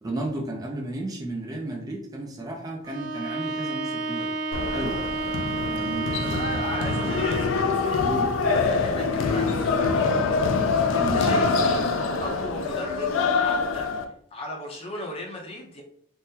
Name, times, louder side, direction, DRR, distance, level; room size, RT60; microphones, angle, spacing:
voice 1, 0.0-4.4 4.7-5.0 5.6-6.4 8.0-8.3 11.0-11.3, right 2 dB, 20° right, 0 dB, 0.4 m, -33 dB
Bowed string instrument, 2.8-7.7, right 3 dB, 60° right, 0.6 m, -30 dB
sound 1, 4.5-14.0, left 4 dB, 85° left, 0.4 m, -24 dB
voice 2, 6.2-8.1 8.4-13.9 14.3-15.8, left 1 dB, 30° left, 1 dB, 0.6 m, -37 dB
3.5 x 2.1 x 2.7 m, 0.62 s
head